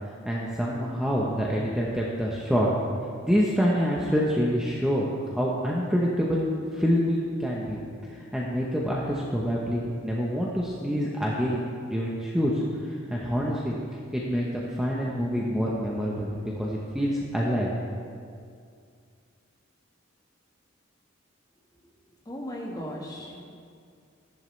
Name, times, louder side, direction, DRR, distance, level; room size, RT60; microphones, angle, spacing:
voice 1, 0.2-2.7 3.2-6.5 6.7-7.8 8.1-13.8 14.1-17.7, equal, 5° right, -4 dB, 0.8 m, -26 dB
voice 2, 22.2-23.4, equal, 20° left, -2 dB, 1.5 m, -36 dB
14.0 x 11.0 x 3.2 m, 2.3 s
head